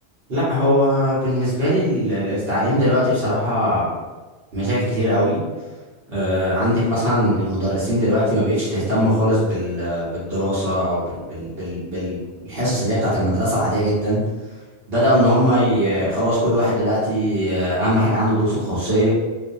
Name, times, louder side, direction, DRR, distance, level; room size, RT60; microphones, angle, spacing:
voice 1, 0.3-3.9 4.5-5.4 6.1-14.2 14.9-19.1, equal, 65° right, -11 dB, 1.3 m, -20 dB
2.7 x 2.5 x 2.5 m, 1.3 s
omnidirectional pair, 1.1 m